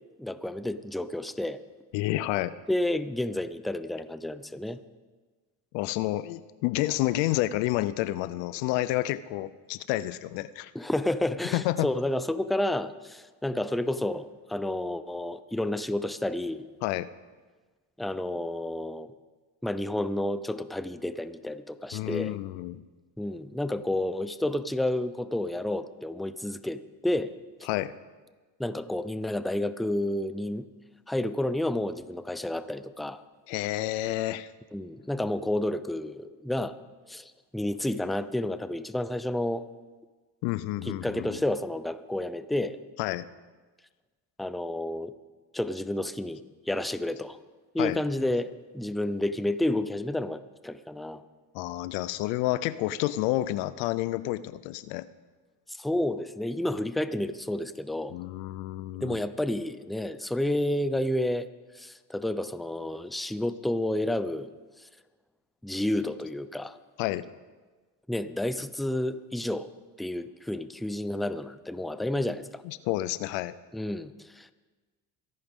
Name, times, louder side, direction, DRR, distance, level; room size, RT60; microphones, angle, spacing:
voice 1, 0.2-1.6 2.7-4.8 10.7-16.7 18.0-19.1 19.6-22.4 23.2-27.3 28.6-30.6 31.1-33.2 34.7-36.8 37.1-39.6 40.8-42.8 44.4-45.1 45.5-46.4 46.7-47.4 47.7-51.2 55.7-58.1 59.0-61.5 61.7-64.5 64.8-64.9 65.6-66.8 68.1-69.7 70.0-72.6 73.7-74.5, left 1 dB, ahead, 12 dB, 0.6 m, -30 dB
voice 2, 1.9-2.5 5.7-10.7 11.5-11.9 16.8-17.1 21.9-22.8 27.7-27.9 33.5-34.5 40.4-41.4 43.0-43.3 47.8-48.0 51.5-55.1 58.1-59.2 67.0-67.3 72.6-73.6, left 16 dB, 85° left, 16 dB, 0.6 m, -29 dB
23.0 x 11.0 x 3.7 m, 1.3 s
supercardioid pair, 80°, 44 cm